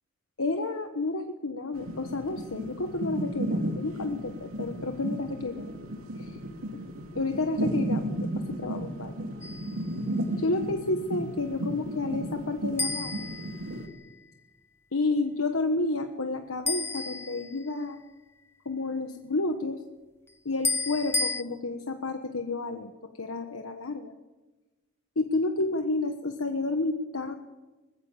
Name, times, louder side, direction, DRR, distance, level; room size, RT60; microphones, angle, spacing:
voice 1, 0.4-5.7 6.2-6.4 7.1-8.3 8.6-9.2 10.4-13.3 14.9-18.0 18.6-19.8 20.4-22.9 23.2-24.1 25.2-27.3, left 3 dB, 80° left, 6 dB, 1.3 m, -30 dB
sound 1, 1.7-13.9, right 1 dB, 85° right, 2.7 m, -34 dB
sound 2, 9.4-9.8 12.8-14.1 16.7-17.9 20.6-21.4, left 3 dB, 10° left, 0.7 m, -32 dB
21.0 x 15.5 x 8.8 m, 1.2 s
head